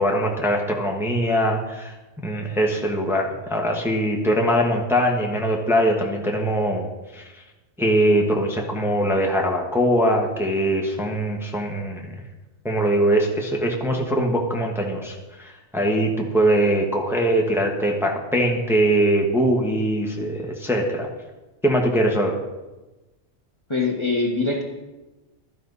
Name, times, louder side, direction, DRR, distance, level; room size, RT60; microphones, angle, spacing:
voice 1, 0.0-1.9 2.2-6.9 7.1-7.2 7.8-12.2 12.6-21.1 21.6-22.3, right 1 dB, ahead, 0 dB, 1.6 m, -22 dB
voice 2, 23.7-24.6, left 3 dB, 20° left, 0 dB, 1.6 m, -23 dB
15.5 x 12.5 x 4.2 m, 1.1 s
omnidirectional pair, 1.3 m